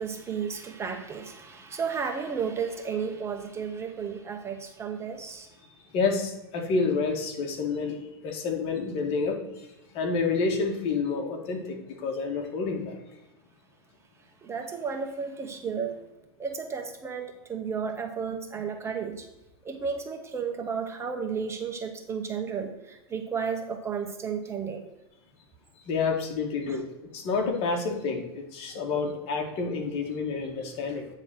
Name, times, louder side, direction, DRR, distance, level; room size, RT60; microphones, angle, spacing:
voice 1, 0.0-5.5 14.4-16.0 16.4-19.3 19.6-24.8 26.6-26.8, right 6 dB, 20° right, 5 dB, 0.8 m, -33 dB
voice 2, 5.9-9.7 9.9-13.0 25.9-26.8 27.1-31.1, left 4 dB, 45° left, 3 dB, 1.9 m, -29 dB
8.8 x 3.9 x 6.2 m, 0.99 s
supercardioid pair, 130°, 14 cm